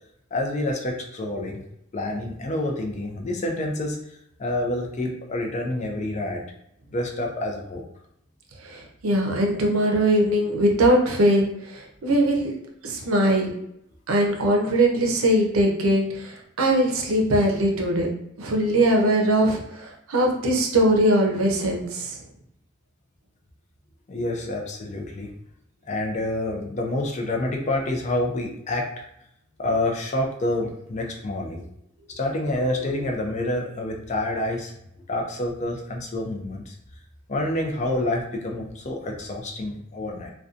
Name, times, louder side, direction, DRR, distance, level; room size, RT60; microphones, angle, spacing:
voice 1, 0.3-1.6 1.9-4.0 4.4-6.4 6.9-7.8 24.1-25.3 25.9-29.1 29.6-31.6 32.2-34.7 35.1-36.7 37.3-40.3, left 1 dB, 35° left, 1 dB, 0.4 m, -28 dB
voice 2, 8.6-12.5 12.8-13.5 14.1-18.1 18.4-22.2, right 1 dB, 85° right, 1 dB, 0.5 m, -21 dB
2.5 x 2.2 x 2.4 m, 0.79 s
head